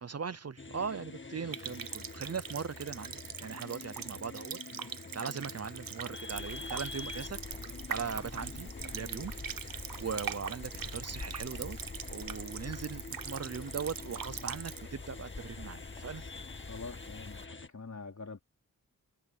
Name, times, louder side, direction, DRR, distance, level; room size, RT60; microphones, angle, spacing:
voice 1, 0.0-4.6 4.9-7.4 7.9-11.8 12.1-16.2, right 6 dB, 45° right, 0.7 m, -39 dB
sound 1, 0.6-17.7, left 3 dB, 35° left, 1.7 m, -47 dB
Water tap faucet, 1.5-14.8, right 8 dB, 70° right, 0.9 m, -42 dB
sound 2, 6.3-17.5, left 3 dB, 20° left, 0.5 m, -47 dB
voice 2, 16.7-18.4, left 4 dB, 50° left, 4.1 m, -45 dB
wide cardioid pair, 65°, 35 cm